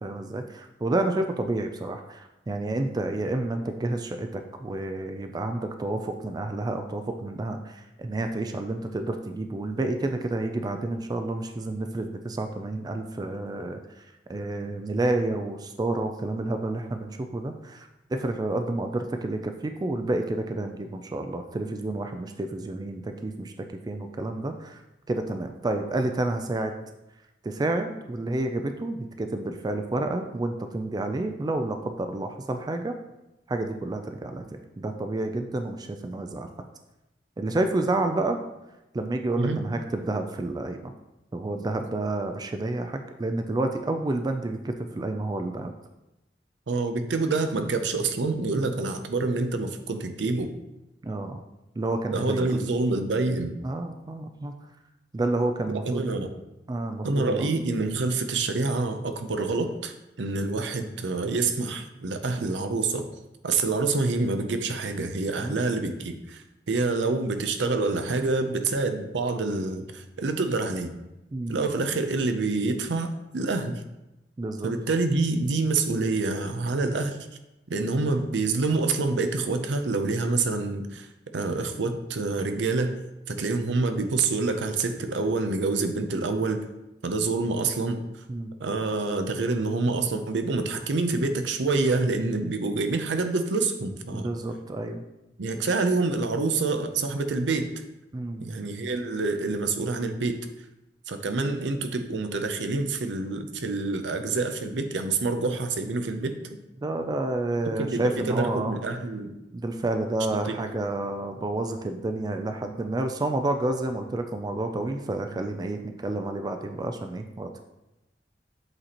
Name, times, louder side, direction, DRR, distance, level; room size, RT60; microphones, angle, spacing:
voice 1, 0.0-13.8 14.3-24.8 25.1-26.8 27.4-32.9 33.5-36.5 37.4-38.4 38.9-40.9 41.3-45.7 51.0-51.4 51.8-52.5 53.6-54.5 55.1-56.1 56.7-57.5 65.4-65.6 71.3-71.6 74.4-74.7 88.3-88.5 94.1-95.0 98.1-98.5 106.8-108.7 109.5-117.6, right 2 dB, 20° right, 6 dB, 0.3 m, -29 dB
voice 2, 46.7-50.5 52.1-53.6 55.7-56.3 57.0-63.1 63.4-70.9 71.5-73.8 74.6-77.2 77.7-81.1 81.3-83.0 83.3-86.6 87.0-88.0 88.6-94.3 95.4-97.7 98.4-100.4 101.1-106.4 107.7-109.4 110.4-110.6, right 3 dB, 75° right, 7 dB, 0.6 m, -27 dB
7.8 x 4.2 x 2.9 m, 0.94 s
head